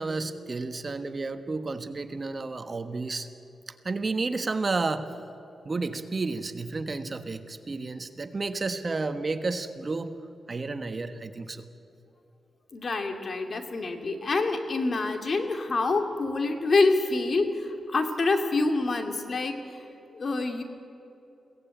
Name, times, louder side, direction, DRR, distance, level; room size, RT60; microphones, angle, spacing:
voice 1, 0.0-3.3 3.7-5.1 5.6-10.1 10.5-11.7, right 3 dB, 40° right, 9 dB, 1.4 m, -31 dB
voice 2, 12.7-19.8 20.1-20.6, left 3 dB, 50° left, 5 dB, 2.7 m, -26 dB
22.0 x 18.0 x 9.1 m, 2.9 s
cardioid pair, 75°, 0 cm